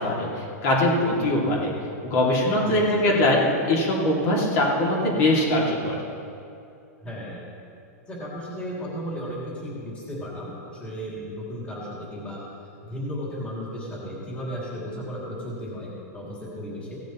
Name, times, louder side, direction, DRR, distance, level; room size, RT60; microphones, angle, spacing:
voice 1, 0.0-1.7 2.0-6.0, left 1 dB, 55° left, -3 dB, 2.7 m, -22 dB
voice 2, 2.6-3.1 7.0-7.4 8.1-12.4 12.8-17.0, equal, 15° left, -5 dB, 2.8 m, -34 dB
17.0 x 12.5 x 3.1 m, 2.6 s
supercardioid pair, 155°, 9 cm